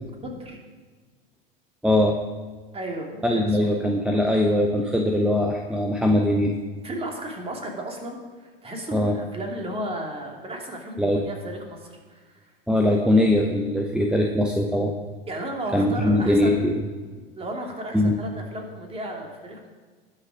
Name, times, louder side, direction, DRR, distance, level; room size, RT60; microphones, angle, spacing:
voice 1, 0.2-0.6 2.7-3.9 6.8-12.4 15.3-16.6 17.4-19.7, right 1 dB, 20° right, 1 dB, 2.7 m, -34 dB
voice 2, 1.8-2.2 3.2-6.5 8.9-9.2 11.0-11.3 12.7-14.9 15.7-16.8 17.9-18.1, left 1 dB, 5° right, 0 dB, 1.0 m, -21 dB
19.5 x 6.7 x 5.0 m, 1.4 s
figure-of-eight pair, 90°, 30 cm